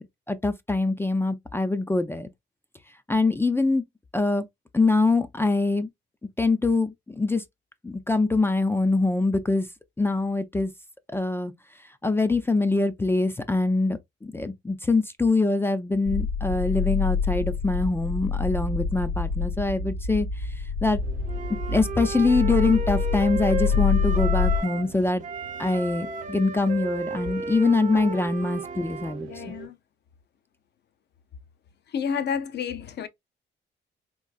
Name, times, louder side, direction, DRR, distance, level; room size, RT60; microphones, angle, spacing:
voice 1, 0.0-2.3 3.1-3.8 4.1-4.4 4.7-5.9 6.4-7.4 7.8-9.7 10.0-10.7 11.1-11.5 12.0-20.5 20.8-21.0 21.7-25.2 25.6-29.5, left 3 dB, 10° left, 0.3 m, -24 dB
sound 1, 16.1-24.6, left 5 dB, 80° left, 2.1 m, -26 dB
sound 2, 21.0-29.7, right 6 dB, 75° right, 0.7 m, -45 dB
Wind instrument woodwind instrument, 21.3-24.9 25.2-29.2, right 4 dB, 40° right, 0.6 m, -34 dB
voice 2, 29.3-29.7 31.9-33.1, left 7 dB, 60° left, 0.6 m, -30 dB
3.7 x 2.3 x 2.3 m
cardioid pair, 90°, 20 cm